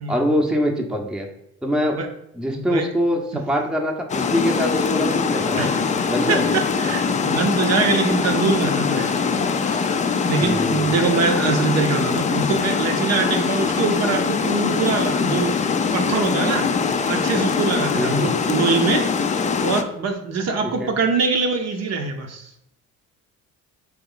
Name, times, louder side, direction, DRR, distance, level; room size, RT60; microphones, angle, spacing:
voice 1, 0.1-1.3 1.6-2.0 2.4-5.8 6.1-6.5 10.4-10.9 18.0-18.3 20.8-20.9, equal, ahead, 2 dB, 0.7 m, -23 dB
voice 2, 2.5-2.8 5.6-6.0 6.3-10.0 10.2-15.7 15.9-16.7 17.1-19.1 19.6-22.5, right 4 dB, 55° right, 4 dB, 0.7 m, -23 dB
Water, 4.1-19.8, left 5 dB, 25° left, 0.3 m, -22 dB
3.0 x 3.0 x 3.8 m, 0.79 s
supercardioid pair, 75°, 31 cm